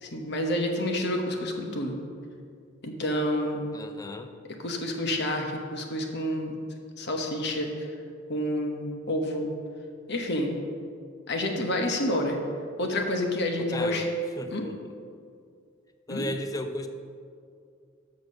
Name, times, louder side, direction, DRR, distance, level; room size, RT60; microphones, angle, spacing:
voice 1, 0.0-2.0 2.8-3.7 4.6-6.6 7.0-7.9 8.3-9.5 10.1-10.5 11.3-12.4 12.8-14.1 14.5-14.7 16.1-16.3, left 1 dB, 55° left, 3 dB, 1.1 m, -29 dB
voice 2, 3.7-4.3 13.4-14.9 16.1-16.9, left 1 dB, 20° left, 7 dB, 0.5 m, -35 dB
6.9 x 6.3 x 6.2 m, 2.3 s
head